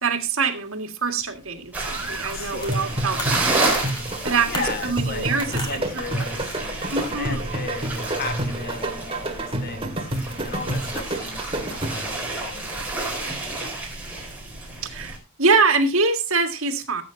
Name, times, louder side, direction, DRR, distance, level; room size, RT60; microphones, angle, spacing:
voice 1, 0.0-3.6 4.2-6.0 6.9-7.5 14.8-17.0, right 4 dB, 65° right, 7 dB, 1.9 m, -24 dB
sound 1, 1.2-12.0, left 1 dB, 20° left, 2.6 m, -43 dB
sound 2, 1.7-15.2, right 2 dB, 5° right, 4.2 m, -30 dB
voice 2, 2.3-2.8 4.4-13.6, left 4 dB, 45° left, 9 dB, 1.3 m, -36 dB
sound 3, 2.7-12.2, right 1 dB, 25° right, 2.0 m, -29 dB
18.0 x 8.2 x 2.7 m, 0.26 s
head